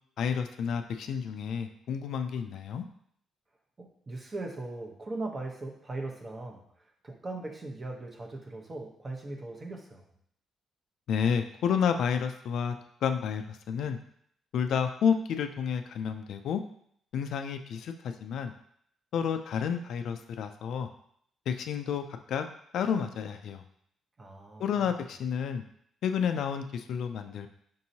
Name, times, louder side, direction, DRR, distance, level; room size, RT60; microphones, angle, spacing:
voice 1, 0.2-2.9 11.1-12.8 13.0-14.0 14.5-16.6 17.1-18.5 19.1-20.9 21.5-22.5 22.7-23.6 24.6-25.6 26.0-27.5, left 7 dB, 75° left, 7 dB, 0.3 m, -30 dB
voice 2, 3.8-6.6 7.0-10.0 24.2-24.6, right 2 dB, 30° right, 0 dB, 0.8 m, -39 dB
5.2 x 2.8 x 2.7 m, 0.67 s
cardioid pair, 90°, 0 cm